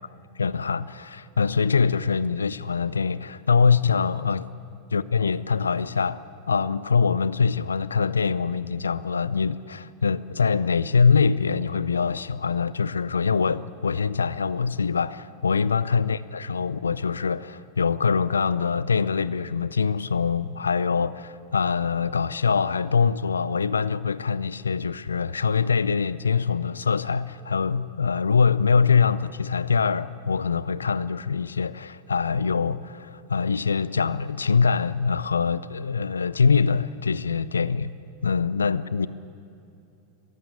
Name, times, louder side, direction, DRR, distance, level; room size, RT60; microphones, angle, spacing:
voice 1, 0.4-4.5 4.9-6.2 6.5-37.9 38.2-39.1, left 5 dB, 85° left, 18 dB, 0.5 m, -24 dB
22.0 x 15.0 x 8.4 m, 2.7 s
hypercardioid pair, 90°, 0 cm